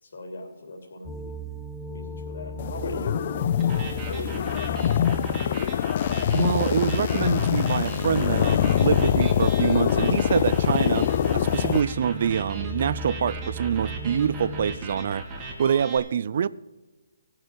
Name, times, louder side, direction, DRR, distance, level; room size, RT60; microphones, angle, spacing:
voice 1, 0.0-1.3 1.8-5.7, left 2 dB, 60° left, 3.1 m, -40 dB
sound 1, 1.0-14.8, equal, 5° left, 0.9 m, -37 dB
sound 2, 2.6-11.8, left 9 dB, 35° left, 0.3 m, -24 dB
sound 3, 3.6-16.0, right 2 dB, 15° right, 2.1 m, -38 dB
voice 2, 6.3-15.3 15.6-16.5, right 7 dB, 45° right, 0.4 m, -25 dB
17.0 x 6.6 x 6.1 m
hypercardioid pair, 165°, 0 cm